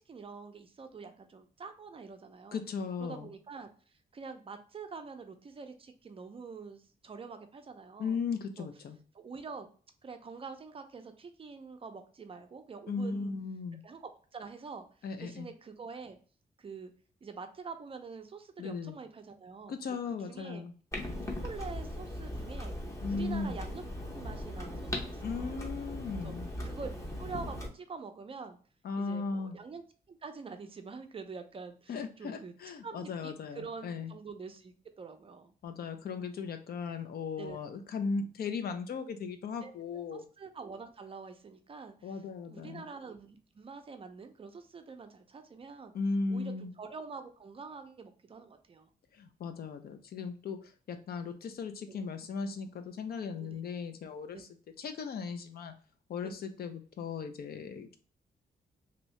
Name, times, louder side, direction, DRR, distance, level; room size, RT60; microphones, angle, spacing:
voice 1, 0.1-2.6 3.0-3.7 4.1-8.2 8.6-8.7 9.1-9.7 10.0-13.3 13.8-14.9 15.2-16.2 16.6-16.9 17.2-19.8 20.2-20.6 21.4-22.7 23.1-23.9 24.1-25.5 26.2-26.3 26.6-28.6 29.0-29.8 30.1-32.5 32.8-35.5 37.4-37.6 39.6-39.7 40.1-42.2 42.5-45.9 46.3-48.9 51.9-52.0 53.4-53.6 54.3-54.4 56.2-56.4, right 5 dB, 35° right, 7 dB, 0.4 m, -46 dB
voice 2, 2.5-3.3 8.0-9.0 12.9-13.8 15.0-15.5 18.6-19.0 19.7-20.7 23.0-23.6 25.2-26.5 28.8-29.6 31.9-34.1 35.6-40.2 42.0-42.8 45.9-46.7 49.1-54.5 54.8-55.7 56.1-58.0, left 4 dB, 65° left, 8 dB, 0.5 m, -37 dB
Clock, 20.9-27.7, left 1 dB, 15° left, 0.7 m, -39 dB
2.7 x 2.6 x 3.1 m, 0.41 s
wide cardioid pair, 130°, 17 cm